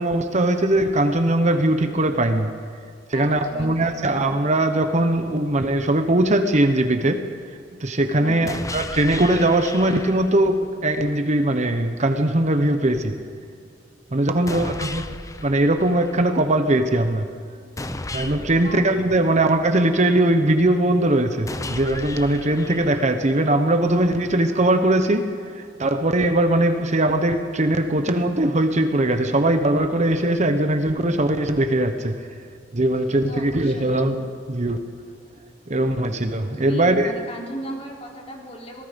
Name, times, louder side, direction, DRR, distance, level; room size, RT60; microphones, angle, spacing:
voice 1, 0.0-2.5 3.1-7.3 7.8-13.2 14.1-15.0 15.4-17.3 18.1-32.2 32.7-34.8 35.7-37.1, right 1 dB, 40° right, 7 dB, 1.1 m, -20 dB
voice 2, 3.1-4.1 8.2-8.5 14.4-14.8 18.5-18.9 33.1-34.0 36.5-38.8, equal, 35° left, -1 dB, 3.9 m, -37 dB
sound 1, 8.5-10.5 14.5-16.5 17.8-19.8 21.5-23.5, left 2 dB, 20° left, 0.8 m, -35 dB
27.0 x 18.5 x 5.3 m, 2.1 s
head